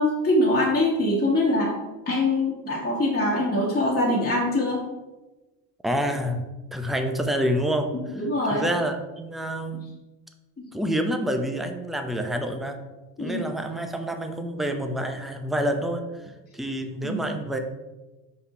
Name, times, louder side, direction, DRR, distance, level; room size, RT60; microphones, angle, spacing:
voice 1, 0.0-1.8 2.0-4.8 8.2-8.7 10.6-10.7 13.2-13.4 17.0-17.2, left 1 dB, 20° left, -5 dB, 1.6 m, -23 dB
voice 2, 5.8-7.9 8.1-8.2 8.5-9.9 10.7-12.8 13.2-17.6, equal, ahead, 5 dB, 0.6 m, -28 dB
5.3 x 4.6 x 4.3 m, 1.1 s
supercardioid pair, 90°, 46 cm